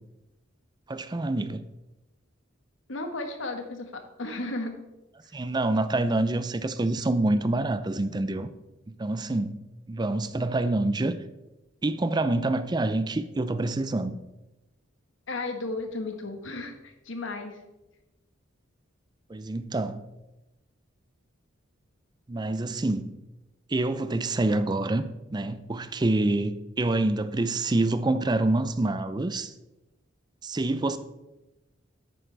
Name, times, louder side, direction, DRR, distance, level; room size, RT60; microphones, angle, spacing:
voice 1, 0.9-1.6 5.3-8.5 9.0-9.6 9.9-11.2 11.8-14.2 19.3-20.1 22.3-23.1 23.7-25.0 25.3-29.5 30.4-31.0, right 2 dB, 20° right, 0.4 m, -26 dB
voice 2, 2.9-4.8 15.3-17.6, left 2 dB, 70° left, 1.3 m, -34 dB
10.5 x 8.9 x 3.3 m
head